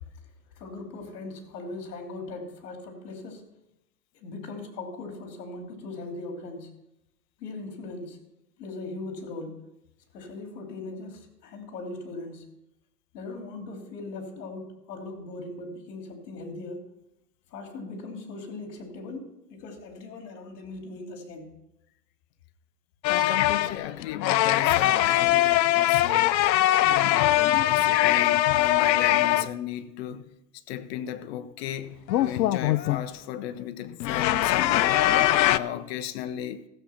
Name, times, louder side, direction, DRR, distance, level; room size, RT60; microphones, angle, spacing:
voice 1, 0.6-3.4 4.1-6.7 7.4-8.2 8.6-9.6 10.1-12.5 13.1-16.9 17.5-21.6, left 2 dB, 65° left, 3.0 m, -39 dB
sound 1, 23.0-29.5 32.1-33.1 34.0-35.6, left 14 dB, 85° left, 0.6 m, -22 dB
voice 2, 23.1-26.4 26.9-30.4 30.7-35.1 35.5-36.6, left 10 dB, 40° left, 0.8 m, -35 dB
14.5 x 7.3 x 5.7 m
hypercardioid pair, 140°, 50 cm